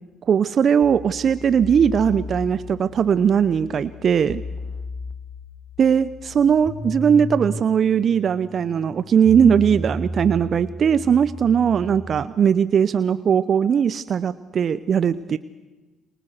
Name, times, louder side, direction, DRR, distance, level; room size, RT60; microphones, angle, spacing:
voice 1, 0.3-4.4 5.8-15.4, right 7 dB, 50° right, 15 dB, 0.8 m, -19 dB
sound 1, 0.8-12.2, left 1 dB, 15° left, 1.8 m, -35 dB
27.5 x 24.5 x 6.6 m, 1.2 s
hypercardioid pair, 50°, 0 cm